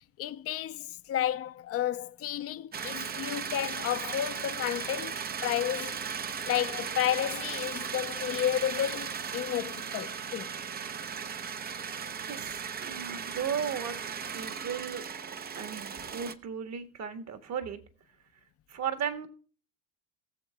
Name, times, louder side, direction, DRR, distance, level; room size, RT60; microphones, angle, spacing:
voice 1, 0.2-6.0 6.4-10.5, left 11 dB, 35° left, 0.7 m, -32 dB
sound 1, 2.7-16.3, right 7 dB, 25° right, 0.7 m, -37 dB
voice 2, 12.2-14.0 14.3-15.1 15.5-17.8 18.7-19.3, right 7 dB, 40° right, 1.5 m, -35 dB
19.0 x 7.2 x 2.2 m
hypercardioid pair, 80°, 40 cm